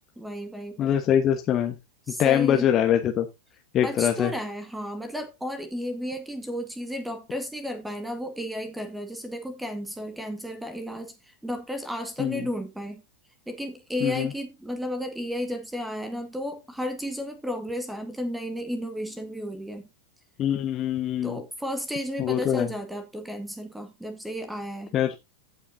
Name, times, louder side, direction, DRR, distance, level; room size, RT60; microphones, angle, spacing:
voice 1, 0.2-0.9 2.1-2.7 3.8-13.0 13.5-19.8 21.2-24.9, equal, 5° right, 1.6 m, -33 dB
voice 2, 0.8-1.7 2.2-3.3 3.7-4.3 12.2-12.5 14.0-14.3 20.4-21.4 22.2-22.7 24.9-25.1, left 10 dB, 30° left, 1.2 m, -23 dB
15.5 x 5.9 x 2.6 m
figure-of-eight pair, 90°, 0 cm